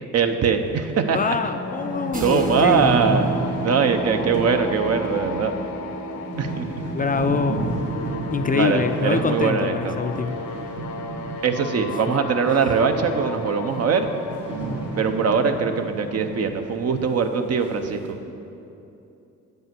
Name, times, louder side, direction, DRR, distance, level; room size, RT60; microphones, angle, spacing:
voice 1, 0.1-1.2 2.2-3.3 3.6-5.6 6.4-6.8 8.5-10.0 11.4-14.1 15.0-18.2, right 5 dB, 55° right, 6 dB, 0.8 m, -22 dB
sound 1, 0.9-1.0 1.4-1.5 1.6-11.9 12.1-16.6 16.9-17.0 17.6-18.1, right 3 dB, 80° right, 2.1 m, -33 dB
sound 2, 1.0-16.8, left 4 dB, 70° left, 0.8 m, -35 dB
voice 2, 1.1-2.9 6.9-7.7 8.3-10.4, left 5 dB, 30° left, 8 dB, 0.4 m, -24 dB
sound 3, 2.1-11.8, right 5 dB, 25° right, 0.9 m, -37 dB
9.0 x 5.5 x 7.5 m, 2.8 s
cardioid pair, 90°, 30 cm